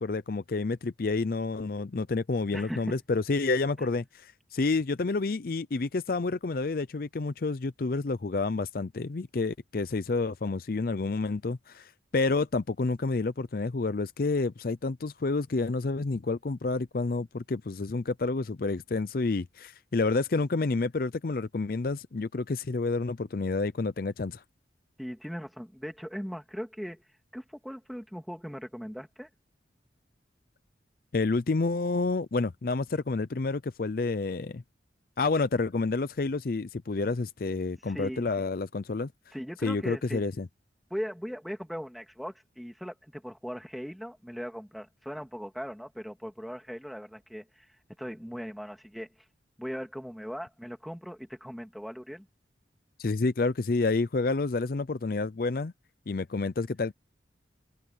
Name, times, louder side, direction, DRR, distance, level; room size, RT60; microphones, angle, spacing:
voice 1, 0.0-24.4 31.1-34.6 35.2-39.1 39.6-40.5 53.0-55.7 56.1-56.9, left 3 dB, 50° left, 0.5 m, -29 dB
voice 2, 2.5-3.0 25.0-27.0 27.3-29.3 37.8-38.3 39.3-40.2 40.9-47.7 48.0-49.1 49.6-52.3, equal, ahead, 2.6 m, -39 dB
head